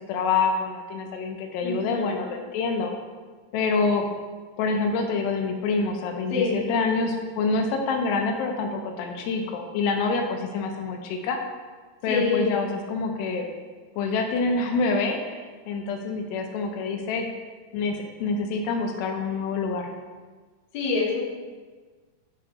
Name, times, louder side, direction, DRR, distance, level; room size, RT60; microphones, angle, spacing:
voice 1, 0.1-2.9 3.5-4.1 4.6-11.4 12.0-13.5 14.0-17.3 17.7-19.9, left 4 dB, 85° left, 3 dB, 2.8 m, -26 dB
voice 2, 1.6-2.2 6.3-6.6 12.1-12.5 20.7-21.2, left 4 dB, 65° left, -5 dB, 2.0 m, -26 dB
11.0 x 3.7 x 2.9 m, 1.4 s
omnidirectional pair, 4.8 m